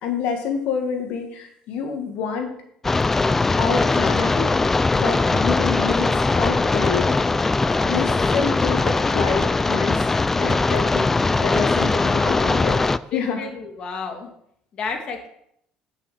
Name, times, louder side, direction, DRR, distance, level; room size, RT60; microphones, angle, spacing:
voice 1, 0.0-2.5 3.6-4.5 4.9-7.1 7.8-10.1 10.4-12.8 13.1-13.4, left 6 dB, 70° left, 4 dB, 1.8 m, -27 dB
sound 1, 2.8-13.0, left 3 dB, 15° left, 0.3 m, -20 dB
voice 2, 12.0-12.6 13.1-14.3 14.8-15.3, left 5 dB, 40° left, 3 dB, 1.7 m, -31 dB
9.6 x 5.7 x 6.8 m, 0.71 s
cardioid pair, 150°, 2 cm